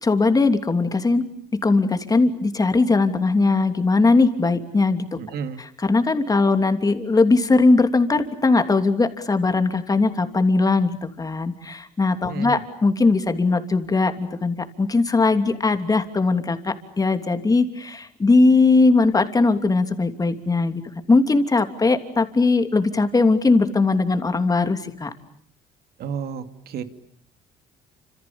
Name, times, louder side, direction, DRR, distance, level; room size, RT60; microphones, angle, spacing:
voice 1, 0.0-1.2 1.5-5.2 5.6-20.8 21.1-25.1, left 3 dB, 20° left, 7 dB, 3.0 m, -19 dB
voice 2, 5.1-5.6 12.3-12.6 26.0-26.8, right 6 dB, 65° right, 9 dB, 2.6 m, -31 dB
30.0 x 27.0 x 7.1 m, 0.63 s
cardioid pair, 110°, 17 cm